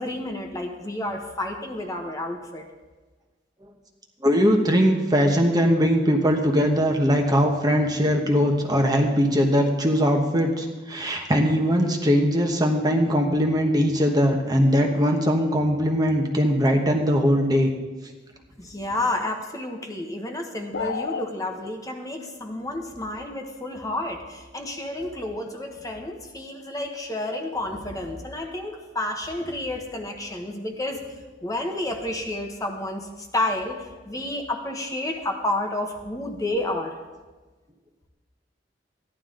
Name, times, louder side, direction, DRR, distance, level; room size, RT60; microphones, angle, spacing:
voice 1, 0.0-2.6 18.6-36.9, left 1 dB, 20° left, 3 dB, 1.1 m, -30 dB
voice 2, 4.2-17.7, equal, 20° right, 2 dB, 1.1 m, -21 dB
sound 1, 20.7-21.3, left 5 dB, 70° left, 0.5 m, -29 dB
15.0 x 11.0 x 3.8 m, 1.3 s
head